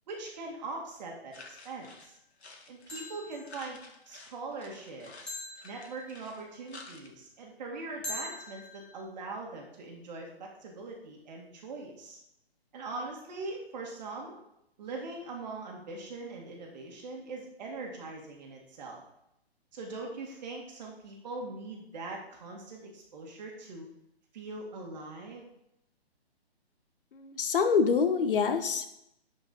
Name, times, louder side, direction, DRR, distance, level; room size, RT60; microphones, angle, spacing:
voice 1, 0.1-2.1 2.7-3.8 4.1-5.1 5.6-12.2 12.7-14.4 14.8-19.0 19.7-23.9 24.3-25.5, right 3 dB, 40° right, 0 dB, 1.8 m, -41 dB
sound 1, 1.3-3.2 3.5-7.1, left 3 dB, 85° left, 1.7 m, -51 dB
sound 2, 1.4-1.7 2.9-3.6 5.3-6.3 8.0-9.0, left 1 dB, ahead, 0.5 m, -42 dB
voice 2, 27.1-28.9, left 5 dB, 55° left, 9 dB, 1.1 m, -26 dB
11.0 x 4.8 x 4.0 m, 0.80 s
hypercardioid pair, 150°, 32 cm